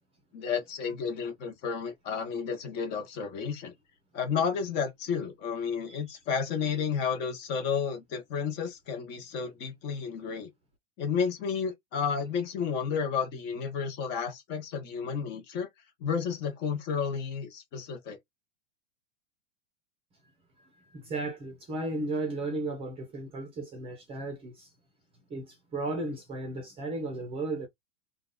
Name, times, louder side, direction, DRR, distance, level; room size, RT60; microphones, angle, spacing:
voice 1, 0.3-3.7 4.1-10.5 11.0-15.7 16.0-18.2, left 6 dB, 30° left, 1.2 m, -32 dB
voice 2, 20.6-24.7 25.3-27.7, right 2 dB, 15° right, 0.8 m, -35 dB
3.7 x 2.5 x 3.8 m
supercardioid pair, 160°, 36 cm